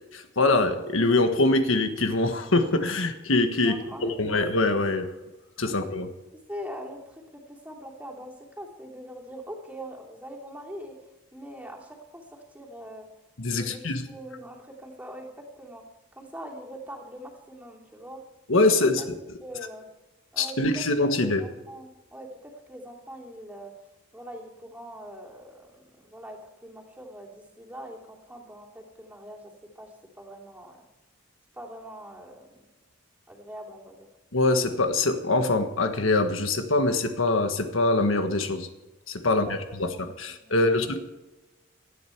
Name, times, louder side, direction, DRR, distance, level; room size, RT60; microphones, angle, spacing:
voice 1, 0.0-5.1 5.6-6.1 13.4-14.1 18.5-19.0 20.4-21.4 34.3-38.7 39.1-41.0, left 2 dB, 80° left, 7 dB, 1.5 m, -24 dB
voice 2, 3.6-4.4 5.7-5.8 6.5-13.1 13.5-15.3 15.6-15.8 16.1-18.2 19.4-19.8 20.3-20.8 21.2-23.7 24.1-30.9 31.5-32.6 33.3-34.1 39.2-40.1 40.4-40.7, equal, 5° right, -2 dB, 3.0 m, -43 dB
18.5 x 12.5 x 4.6 m, 1.0 s
head